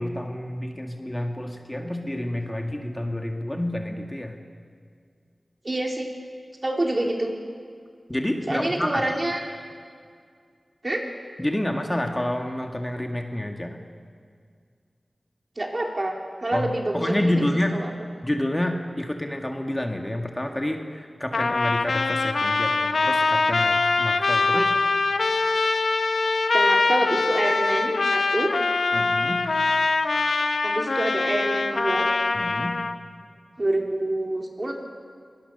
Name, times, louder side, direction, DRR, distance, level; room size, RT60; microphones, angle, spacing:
voice 1, 0.0-4.3 8.1-9.1 11.4-13.8 16.5-17.8 18.2-24.6 28.9-29.4 32.3-32.8, left 1 dB, 20° left, 3 dB, 1.9 m, -28 dB
voice 2, 5.6-6.1 6.6-7.3 8.5-9.4 10.8-11.0 15.6-17.4 17.7-17.9 24.5-24.7 26.5-28.5 30.6-32.1 33.6-34.7, right 1 dB, 40° right, 1 dB, 3.5 m, -27 dB
Trumpet, 21.3-32.9, left 3 dB, 85° left, 1.1 m, -23 dB
23.5 x 19.0 x 6.8 m, 2.1 s
wide cardioid pair, 55°, 0 cm